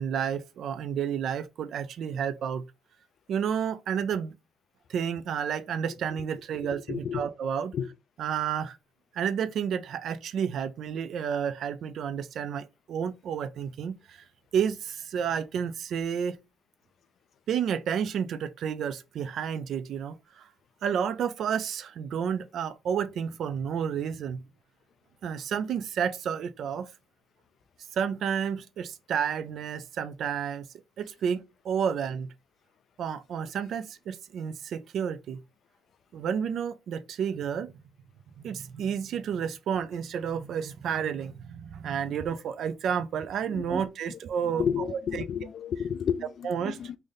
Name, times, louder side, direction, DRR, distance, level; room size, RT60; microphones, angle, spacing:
voice 1, 0.0-2.6 3.3-4.3 4.9-7.7 8.2-8.8 9.1-14.2 14.5-16.4 17.5-20.5 20.8-24.4 25.2-26.9 27.9-30.7 31.0-32.3 33.0-35.4 36.1-37.7 38.4-45.2 46.4-46.8, right 8 dB, 70° right, 0.4 m, -31 dB
voice 2, 6.9-7.2 7.7-7.9 43.5-43.8 44.1-44.2 44.5-47.0, left 8 dB, 60° left, 0.3 m, -31 dB
3.4 x 2.6 x 3.8 m
cardioid pair, 90°, 0 cm